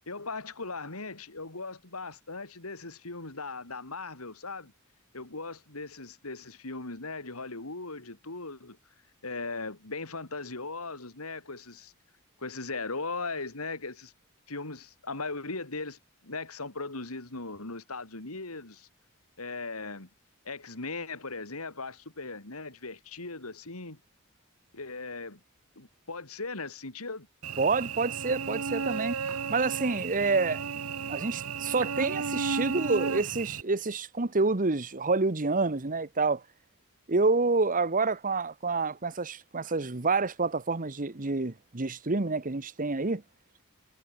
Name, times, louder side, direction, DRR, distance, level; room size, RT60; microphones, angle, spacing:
voice 1, 0.0-4.7 5.1-8.8 9.2-11.9 12.4-14.1 14.5-16.0 16.2-18.9 19.4-20.1 20.4-24.0 24.7-25.4 25.7-27.3, left 3 dB, 85° left, 3.4 m, -38 dB
Cricket / Buzz, 27.4-33.6, right 5 dB, 90° right, 1.0 m, -33 dB
voice 2, 27.6-29.2 29.5-30.6 31.1-36.4 37.1-43.2, right 3 dB, 40° right, 1.2 m, -28 dB
head